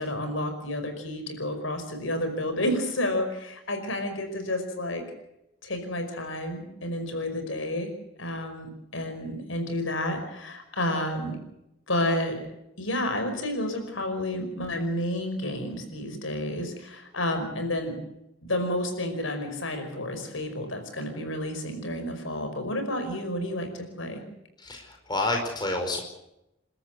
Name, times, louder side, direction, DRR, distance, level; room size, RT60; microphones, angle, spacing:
voice 1, 0.0-5.0 5.6-7.9 8.2-11.4 11.9-12.4 12.8-18.0 18.4-24.2, left 1 dB, 75° left, 6 dB, 5.3 m, -30 dB
voice 2, 24.6-26.0, left 2 dB, 20° left, 3 dB, 4.9 m, -29 dB
29.5 x 13.5 x 7.9 m, 0.87 s
head